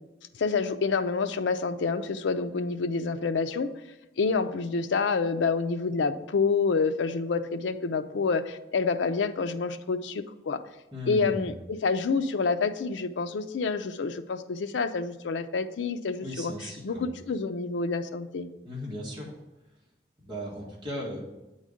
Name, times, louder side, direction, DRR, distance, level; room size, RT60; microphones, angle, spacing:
voice 1, 0.3-3.7 4.2-10.6 11.1-11.5 11.8-18.5, left 4 dB, 85° left, 10 dB, 0.5 m, -28 dB
voice 2, 10.9-11.5 16.2-17.0 18.6-19.4 20.2-21.2, equal, 25° right, -4 dB, 1.8 m, -36 dB
8.2 x 4.0 x 4.9 m, 1.0 s
head